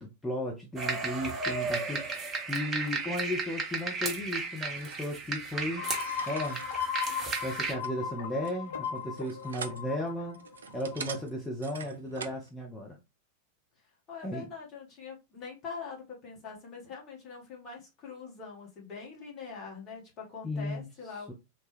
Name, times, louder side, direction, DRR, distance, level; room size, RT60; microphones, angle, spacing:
voice 1, 0.0-5.9 6.3-6.6 7.4-10.4 10.7-13.0 14.2-14.5 20.4-20.9 21.3-21.4, left 1 dB, 10° left, 0.5 m, -35 dB
sound 1, 0.8-7.7, right 4 dB, 20° right, 0.8 m, -34 dB
sound 2, 4.6-12.5, right 6 dB, 70° right, 0.3 m, -46 dB
sound 3, 5.8-11.2, left 7 dB, 60° left, 0.5 m, -37 dB
voice 2, 14.1-21.3, left 5 dB, 35° left, 1.2 m, -43 dB
2.9 x 2.2 x 3.1 m
figure-of-eight pair, 90°, 0 cm